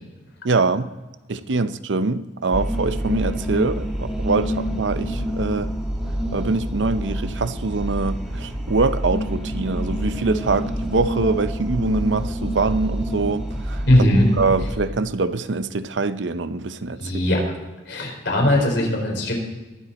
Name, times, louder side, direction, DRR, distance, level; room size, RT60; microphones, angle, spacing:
voice 1, 0.4-0.9 1.3-5.7 6.3-13.8 14.4-17.0, right 3 dB, 80° right, 0.7 m, -24 dB
sound 1, 2.5-14.7, equal, 5° right, 1.6 m, -27 dB
voice 2, 13.9-14.3 17.0-17.4 17.9-19.3, left 1 dB, 85° left, 4.3 m, -19 dB
22.0 x 8.1 x 4.2 m
head